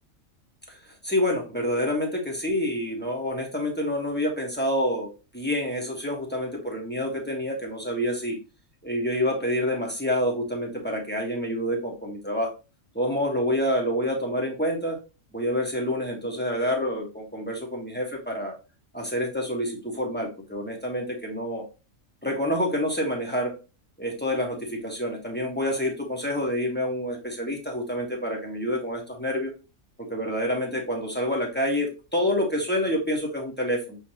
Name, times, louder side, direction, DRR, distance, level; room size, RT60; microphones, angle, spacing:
voice 1, 1.0-8.4 8.8-12.5 12.9-15.0 15.3-18.5 18.9-21.6 22.2-23.5 24.0-29.5 30.1-34.0, equal, 10° left, 0 dB, 1.1 m, -27 dB
6.5 x 2.8 x 2.8 m, 0.31 s
omnidirectional pair, 1.4 m